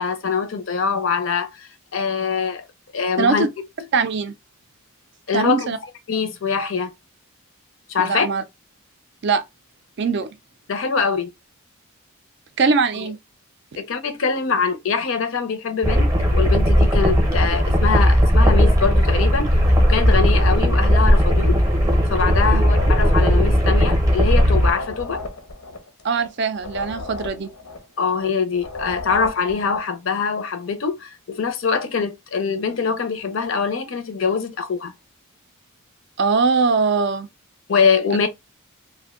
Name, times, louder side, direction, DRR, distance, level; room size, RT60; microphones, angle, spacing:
voice 1, 0.0-2.6 2.9-3.4 5.3-5.7 6.1-6.9 7.9-8.3 10.7-11.3 13.8-19.5 19.9-21.6 22.1-25.2 28.0-34.9 37.7-38.3, left 5 dB, 60° left, 0.5 m, -23 dB
voice 2, 3.2-3.5 3.9-4.3 5.3-5.8 8.0-8.4 9.2-9.4 10.0-10.3 12.6-13.2 22.4-22.6 26.0-27.5 36.2-37.3, right 4 dB, 50° right, 0.4 m, -21 dB
sound 1, 15.8-24.7, equal, 15° right, 0.7 m, -16 dB
sound 2, 22.5-29.9, left 2 dB, 90° left, 0.8 m, -35 dB
2.5 x 2.1 x 3.5 m
head